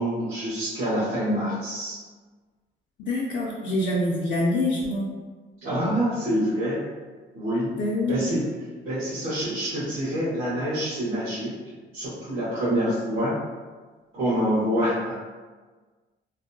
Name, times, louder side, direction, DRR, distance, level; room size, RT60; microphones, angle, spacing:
voice 1, 0.0-2.0 5.6-6.8 7.3-7.7 8.1-8.5 8.8-11.5 11.9-13.4 14.1-15.2, equal, 80° right, -11 dB, 1.0 m, -26 dB
voice 2, 3.1-5.1 7.8-8.2, left 1 dB, 65° left, -4 dB, 0.4 m, -25 dB
2.6 x 2.2 x 2.6 m, 1.4 s
cardioid pair, 90°, 20 cm